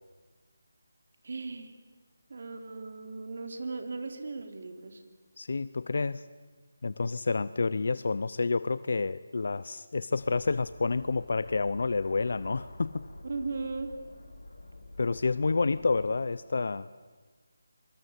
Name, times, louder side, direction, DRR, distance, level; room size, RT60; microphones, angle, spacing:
voice 1, 1.2-1.7 2.3-5.0 13.2-14.0, right 3 dB, 55° right, 6 dB, 3.5 m, -37 dB
voice 2, 5.4-6.2 6.8-13.0 15.0-16.9, left 4 dB, 60° left, 16 dB, 0.7 m, -29 dB
sound 1, 10.1-16.1, left 2 dB, 80° left, 4.1 m, -48 dB
26.0 x 24.0 x 8.3 m, 1.4 s
figure-of-eight pair, 165°, 0 cm